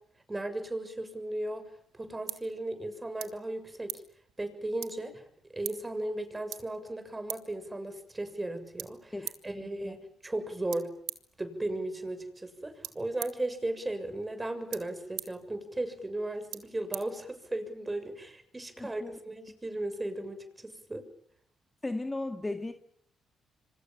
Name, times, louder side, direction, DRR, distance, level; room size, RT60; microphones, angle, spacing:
voice 1, 0.3-1.7 1.9-4.0 4.4-5.2 5.5-10.9 11.4-21.0, right 1 dB, 20° right, 9 dB, 6.9 m, -36 dB
sound 1, 1.5-17.8, right 15 dB, 90° right, 1.8 m, -47 dB
voice 2, 9.1-9.9 18.8-19.1 21.8-22.7, left 2 dB, 20° left, 7 dB, 2.1 m, -36 dB
27.0 x 24.5 x 7.4 m, 0.65 s
supercardioid pair, 65°, 0 cm